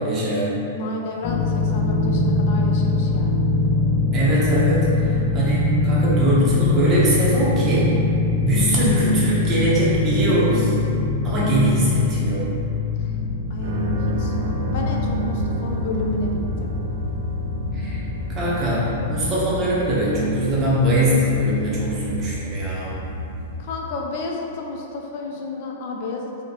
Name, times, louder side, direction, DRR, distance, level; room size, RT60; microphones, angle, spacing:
voice 1, 0.0-0.5 4.1-8.0 8.4-10.8 11.2-12.5 17.7-18.0 18.3-23.1, right 1 dB, 30° right, -7 dB, 1.0 m, -21 dB
voice 2, 0.7-3.5 13.5-16.7 23.6-26.3, left 3 dB, 55° left, 0 dB, 0.5 m, -31 dB
sound 1, 1.2-19.3, left 3 dB, 35° left, 0.8 m, -23 dB
sound 2, 13.6-23.6, right 1 dB, 70° right, 0.6 m, -29 dB
3.0 x 2.8 x 2.8 m, 2.7 s
hypercardioid pair, 130°, 0 cm